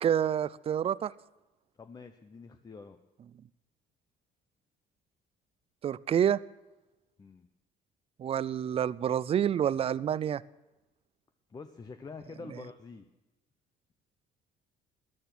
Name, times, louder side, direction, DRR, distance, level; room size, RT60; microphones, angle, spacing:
voice 1, 0.0-1.1 5.8-6.4 8.2-10.4, right 9 dB, 35° right, 20 dB, 0.4 m, -28 dB
voice 2, 1.8-3.0 7.2-7.5 11.5-13.1, left 4 dB, 25° left, 9 dB, 0.7 m, -46 dB
13.5 x 11.0 x 6.0 m, 1.0 s
cardioid pair, 110°, 17 cm